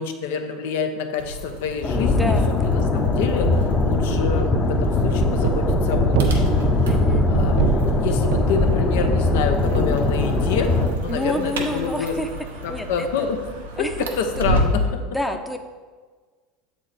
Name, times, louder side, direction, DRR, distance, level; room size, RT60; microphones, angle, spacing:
voice 1, 0.0-2.3 2.7-6.9 7.3-10.7 11.0-12.3 12.6-13.9 14.2-15.0, left 5 dB, 75° left, 6 dB, 0.8 m, -28 dB
sound 1, 1.2-14.9, equal, 90° right, 1.0 m, -31 dB
sound 2, 1.8-10.9, left 3 dB, 35° left, 0.9 m, -21 dB
voice 2, 2.0-2.8 6.8-7.3 11.1-12.3 12.7-13.1 13.8-13.9 15.0-15.6, left 1 dB, 5° left, 6 dB, 0.7 m, -28 dB
sound 3, 3.4-10.5, right 10 dB, 65° right, 0.4 m, -27 dB
7.8 x 4.7 x 4.2 m, 1.5 s
hypercardioid pair, 90°, 0 cm